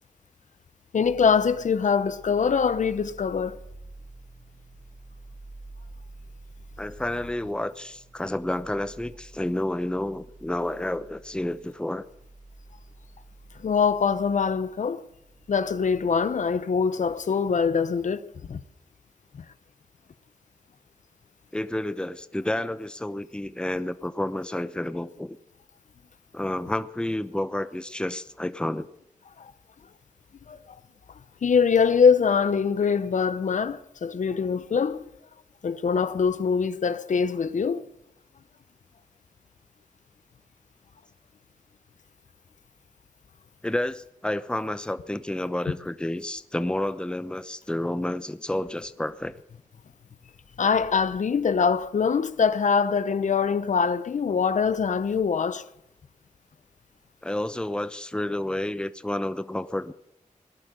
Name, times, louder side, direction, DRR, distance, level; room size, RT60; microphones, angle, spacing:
voice 1, 0.9-3.6 13.6-15.1 15.5-18.6 19.3-19.4 29.4-29.5 30.5-30.6 31.4-35.1 35.6-37.9 50.6-55.7, left 6 dB, 70° left, 0.8 m, -23 dB
sound 1, 1.0-16.6, right 2 dB, 55° right, 3.9 m, -49 dB
voice 2, 6.8-12.0 21.5-25.4 26.3-28.9 43.6-49.4 57.2-59.9, left 1 dB, 5° left, 0.8 m, -30 dB
18.0 x 11.5 x 6.7 m
cardioid pair, 65°, 13 cm